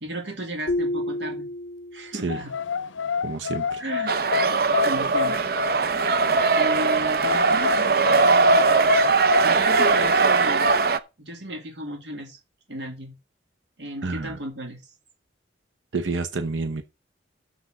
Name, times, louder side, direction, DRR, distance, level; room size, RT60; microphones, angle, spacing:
voice 1, 0.0-1.5 1.9-2.5 3.8-4.2 4.8-5.5 6.6-8.8 9.4-10.7 11.2-12.4 12.7-13.1 13.8-14.8, equal, 70° right, 2.2 m, -34 dB
sound 1, 0.7-2.4, left 1 dB, 45° left, 0.7 m, -29 dB
sound 2, 2.3-10.1, left 6 dB, 90° left, 0.5 m, -28 dB
voice 2, 3.2-3.8 14.0-14.4 15.9-16.8, right 3 dB, 90° right, 0.8 m, -29 dB
sound 3, 4.1-11.0, right 4 dB, 55° right, 0.6 m, -20 dB
6.9 x 6.0 x 6.4 m
head